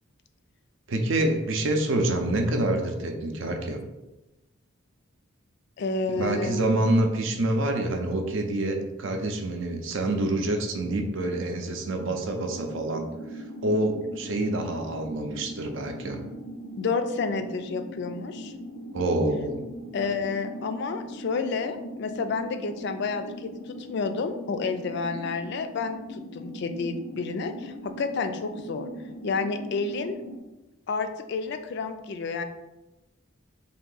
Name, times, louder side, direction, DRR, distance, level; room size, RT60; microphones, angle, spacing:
voice 1, 0.9-3.8 6.1-13.0 13.3-16.2 18.9-19.6, right 1 dB, 65° right, 4 dB, 0.5 m, -27 dB
voice 2, 5.8-6.8 16.8-18.5 19.9-28.9 29.2-30.2 30.9-32.4, left 4 dB, 55° left, 8 dB, 0.3 m, -30 dB
sound 1, 12.4-30.4, equal, 90° left, 0.7 m, -40 dB
3.6 x 2.7 x 3.9 m, 1.0 s
head